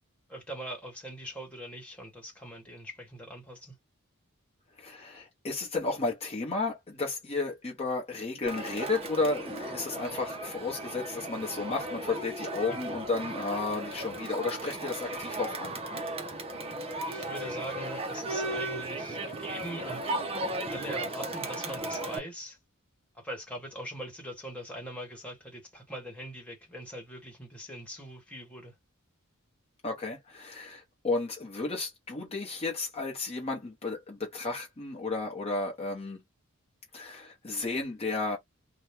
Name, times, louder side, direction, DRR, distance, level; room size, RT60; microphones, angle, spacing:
voice 1, 0.3-3.7 17.0-20.2 20.7-22.6 23.1-28.7, equal, 5° left, 1.3 m, -42 dB
voice 2, 4.8-15.8 29.8-36.2 36.9-38.4, left 3 dB, 30° left, 0.9 m, -33 dB
Crowd, 8.5-22.2, right 2 dB, 25° right, 0.7 m, -36 dB
2.8 x 2.3 x 3.4 m
head